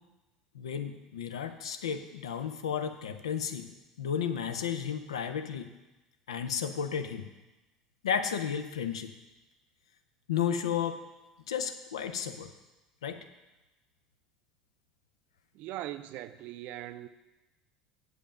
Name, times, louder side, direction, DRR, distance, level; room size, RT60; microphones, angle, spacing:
voice 1, 0.5-3.7 4.0-5.7 6.3-7.3 8.0-9.1 10.3-11.0 11.5-12.5 13.0-13.2, left 8 dB, 75° left, 8 dB, 0.6 m, -33 dB
voice 2, 15.5-17.1, right 14 dB, 50° right, 13 dB, 0.5 m, -40 dB
7.8 x 5.2 x 6.7 m, 1.0 s
figure-of-eight pair, 70°, 3 cm